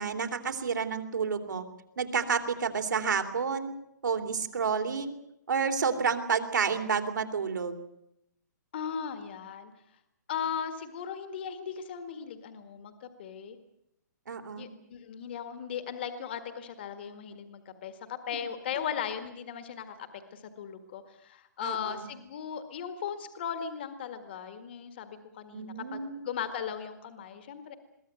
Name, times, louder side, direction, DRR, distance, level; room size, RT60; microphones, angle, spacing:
voice 1, 0.0-1.6 2.0-3.7 4.0-5.1 5.5-7.8 14.3-14.7 21.6-22.1 25.5-26.2, right 6 dB, 80° right, 6 dB, 3.1 m, -30 dB
voice 2, 8.7-9.7 10.3-13.6 14.6-26.0 26.2-27.7, left 8 dB, 35° left, 9 dB, 1.7 m, -37 dB
22.5 x 16.0 x 9.3 m, 0.80 s
hypercardioid pair, 175°, 10 cm